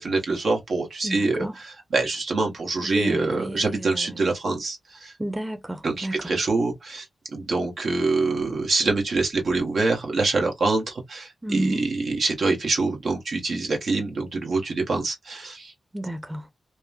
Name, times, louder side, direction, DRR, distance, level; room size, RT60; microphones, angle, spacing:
voice 1, 0.0-5.1 5.8-7.0 7.3-15.7, right 3 dB, 75° right, 1.0 m, -25 dB
voice 2, 1.0-1.5 2.8-4.0 5.2-6.2 11.4-11.8 15.9-16.4, right 1 dB, 15° right, 0.7 m, -30 dB
2.9 x 2.1 x 2.3 m
cardioid pair, 50°, 0 cm